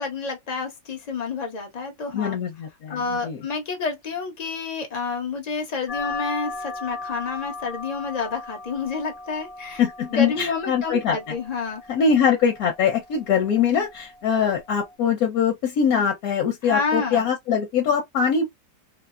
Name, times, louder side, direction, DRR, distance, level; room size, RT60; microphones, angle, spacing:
voice 1, 0.0-2.4 2.9-9.8 10.1-11.8 16.6-17.3, left 4 dB, 90° left, 0.3 m, -29 dB
voice 2, 2.1-3.4 9.8-11.3 11.9-18.4, left 7 dB, 65° left, 1.1 m, -22 dB
sound 1, 5.9-14.9, left 3 dB, 30° left, 0.7 m, -37 dB
2.8 x 2.0 x 2.3 m
omnidirectional pair, 1.8 m